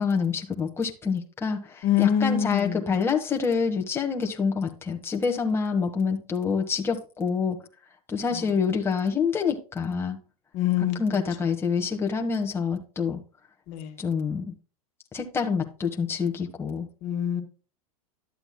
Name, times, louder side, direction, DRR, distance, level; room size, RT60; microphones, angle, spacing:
voice 1, 0.0-7.6 8.1-10.2 10.8-13.2 14.0-14.5 15.1-16.9, left 5 dB, 15° left, 1.3 m, -27 dB
voice 2, 1.8-2.8 10.5-11.0 13.7-13.9 17.0-17.4, left 10 dB, 50° left, 1.7 m, -24 dB
12.0 x 7.9 x 2.3 m
hypercardioid pair, 120°, 19 cm